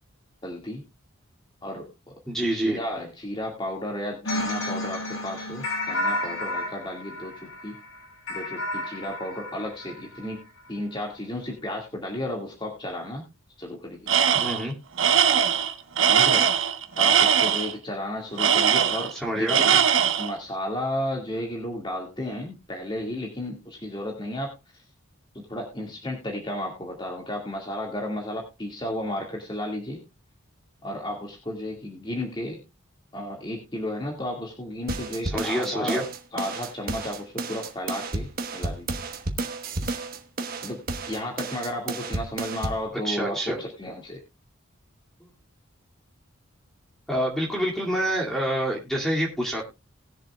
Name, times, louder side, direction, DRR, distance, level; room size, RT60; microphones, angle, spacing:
voice 1, 0.4-0.8 1.6-2.1 2.5-7.7 8.3-13.2 13.6-14.1 16.1-16.5 17.0-19.8 20.2-24.8 25.3-30.0 30.8-32.6 33.1-36.0 36.3-38.9 40.6-44.2, left 1 dB, 20° left, 0 dB, 2.0 m, -33 dB
voice 2, 2.3-2.8 14.3-14.7 19.1-19.6 35.2-36.0 43.0-43.6 47.1-49.6, equal, ahead, -2 dB, 2.3 m, -27 dB
sound 1, 4.3-10.4, left 1 dB, 85° left, 7.2 m, -31 dB
Tools, 14.1-14.6 15.0-17.7 18.4-19.2 19.5-20.3, right 8 dB, 70° right, 1.1 m, -20 dB
sound 2, 34.9-42.9, right 2 dB, 45° right, 1.2 m, -32 dB
20.0 x 7.4 x 2.3 m, 0.24 s
head